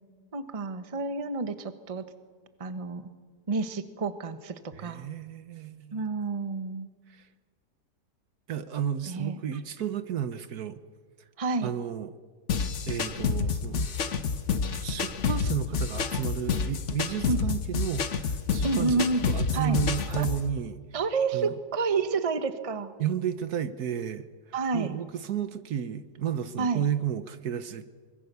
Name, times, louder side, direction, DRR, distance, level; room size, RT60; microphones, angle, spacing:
voice 1, 0.3-2.0 2.6-3.1 3.5-5.1 5.9-6.9 9.1-9.6 11.4-11.7 17.3-17.4 18.6-19.3 19.5-19.8 20.2-20.3 20.9-22.9 24.5-25.0 26.6-26.9, right 4 dB, 25° right, 10 dB, 1.0 m, -29 dB
voice 2, 4.8-6.1 7.1-7.2 8.5-10.8 11.6-12.1 12.9-14.1 14.7-20.8 21.3-21.5 23.0-24.3 24.7-27.9, right 9 dB, 65° right, 12 dB, 1.4 m, -32 dB
sound 1, 12.5-20.5, left 5 dB, 50° left, 1.3 m, -29 dB
25.0 x 22.0 x 6.9 m, 1.5 s
omnidirectional pair, 1.8 m